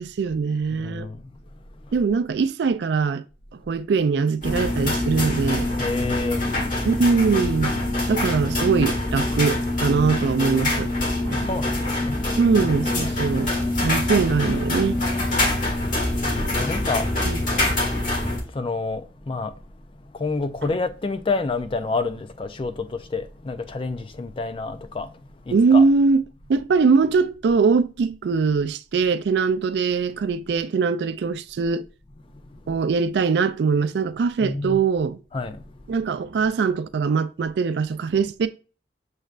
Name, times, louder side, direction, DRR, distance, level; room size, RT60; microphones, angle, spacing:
voice 1, 0.0-1.1 1.9-3.2 3.5-5.7 6.8-7.8 8.1-10.9 11.3-11.5 12.4-13.5 13.8-15.0 17.2-17.4 25.5-26.2 26.5-31.9 32.7-35.2 35.9-38.5, right 5 dB, 65° right, 0.3 m, -22 dB
voice 2, 0.7-1.3 5.8-6.6 11.1-12.4 12.6-13.3 15.3-17.4 18.0-19.6 19.9-25.2 25.5-25.8 32.3-32.8 34.4-34.8 35.3-35.9, left 3 dB, 30° left, 0.4 m, -30 dB
sound 1, 4.4-18.4, left 2 dB, 45° left, 1.6 m, -24 dB
6.5 x 3.2 x 2.4 m
head